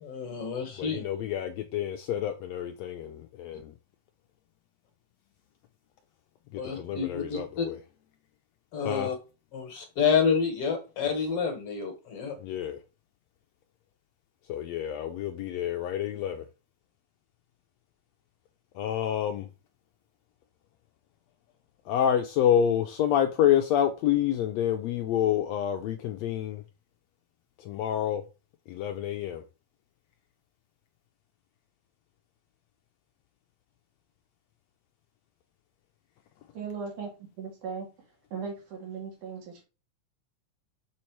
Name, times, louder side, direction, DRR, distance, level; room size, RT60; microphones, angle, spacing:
voice 1, 0.0-1.0 6.6-7.7 8.7-9.2 9.5-12.3, left 6 dB, 55° left, 2.0 m, -28 dB
voice 2, 0.8-3.6 6.8-7.8 8.8-9.1 12.4-12.8 14.5-16.4 18.8-19.4 21.9-26.6 27.7-28.2 28.7-29.4, left 10 dB, 80° left, 1.6 m, -28 dB
voice 3, 36.5-37.1 37.4-37.9 38.3-39.6, right 5 dB, 80° right, 3.7 m, -37 dB
7.0 x 4.3 x 4.5 m
omnidirectional pair, 3.5 m